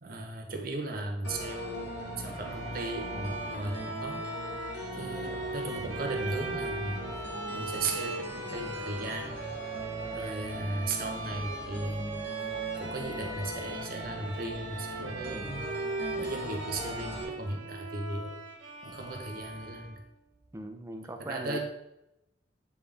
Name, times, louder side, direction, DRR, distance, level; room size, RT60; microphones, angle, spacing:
voice 1, 0.0-4.2 4.9-7.0 7.5-9.4 10.1-12.2 12.8-15.7 16.2-18.3 18.8-20.0 21.2-21.6, right 2 dB, 50° right, 3 dB, 0.9 m, -36 dB
sound 1, 1.2-17.2, equal, 65° left, 1.4 m, -40 dB
Bowed string instrument, 2.3-20.1, right 3 dB, 90° right, 1.1 m, -39 dB
voice 2, 20.5-21.6, right 1 dB, 15° right, 5 dB, 0.5 m, -40 dB
8.5 x 3.7 x 3.4 m, 0.88 s
head